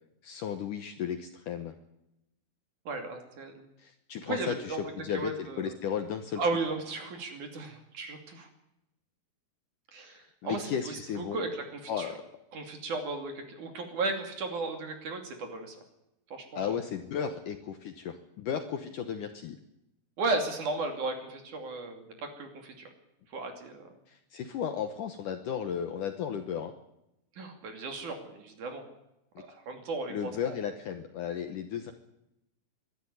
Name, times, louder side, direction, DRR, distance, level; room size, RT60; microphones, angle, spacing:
voice 1, 0.2-1.7 3.8-6.4 10.4-11.4 11.9-12.2 16.5-19.6 24.1-26.7 29.4-29.5 30.1-31.9, left 8 dB, 70° left, 7 dB, 2.1 m, -34 dB
voice 2, 2.9-3.6 4.3-5.7 6.4-8.5 9.9-12.1 12.5-15.8 16.3-16.8 20.2-22.9 23.3-23.8 27.4-28.9 29.4-30.5, right 3 dB, 50° right, 5 dB, 3.8 m, -35 dB
23.5 x 12.5 x 9.8 m, 0.87 s
omnidirectional pair, 4.8 m